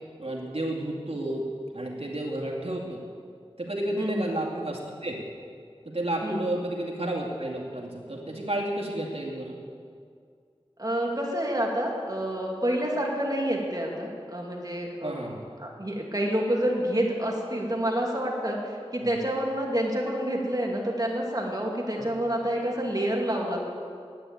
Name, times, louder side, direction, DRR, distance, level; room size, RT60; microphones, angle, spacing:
voice 1, 0.2-1.5 1.7-3.0 3.6-5.2 5.8-9.6 15.0-15.4 19.0-19.1 21.9-22.1, right 1 dB, 65° right, -2 dB, 2.3 m, -31 dB
voice 2, 4.0-4.3 6.2-6.5 10.8-15.3 15.6-23.6, right 1 dB, 35° right, -1 dB, 2.5 m, -28 dB
11.0 x 9.5 x 8.6 m, 2.2 s
wide cardioid pair, 45°, 11 cm